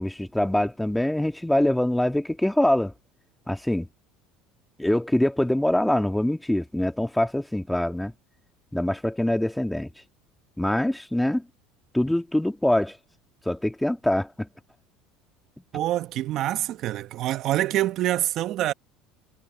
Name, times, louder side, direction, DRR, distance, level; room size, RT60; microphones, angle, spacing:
voice 1, 0.0-2.9 3.5-3.9 4.8-8.1 8.7-9.9 10.6-11.4 11.9-13.0 13.5-14.5, left 1 dB, 5° left, 1.9 m, -24 dB
voice 2, 15.7-18.7, right 14 dB, 55° right, 1.3 m, -26 dB
supercardioid pair, 110°, 0 cm